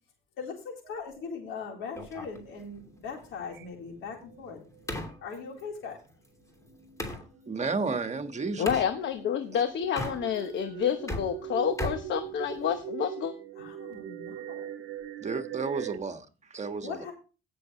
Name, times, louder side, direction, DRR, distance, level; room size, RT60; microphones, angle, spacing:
voice 1, 0.4-4.6 5.2-6.0 13.6-14.7 16.8-17.1, left 5 dB, 90° left, 3.8 m, -40 dB
sound 1, 0.8-1.4 2.0-2.1 3.5-3.9 4.2-5.1 6.5-16.0, right 11 dB, 80° right, 0.9 m, -42 dB
sound 2, 2.0-7.3 8.7-8.9 9.8-10.6 10.9-12.9, left 1 dB, 15° left, 2.9 m, -39 dB
voice 2, 7.5-8.8 9.5-9.6 15.2-17.0, right 4 dB, 35° right, 1.4 m, -32 dB
voice 3, 8.6-13.3, left 8 dB, 70° left, 1.0 m, -29 dB
17.0 x 6.7 x 3.1 m
cardioid pair, 90°, 20 cm